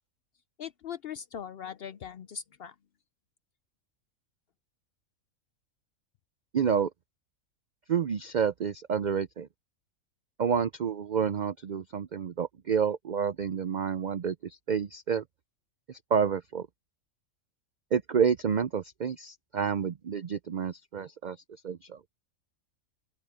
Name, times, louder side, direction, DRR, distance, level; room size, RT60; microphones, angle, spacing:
voice 1, 0.6-2.8, left 8 dB, 60° left, 0.6 m, -40 dB
voice 2, 6.5-6.9 7.9-9.5 10.4-14.3 14.7-15.2 16.1-16.7 17.9-21.4 21.6-21.8, right 7 dB, 65° right, 0.4 m, -29 dB
open air
omnidirectional pair, 1.4 m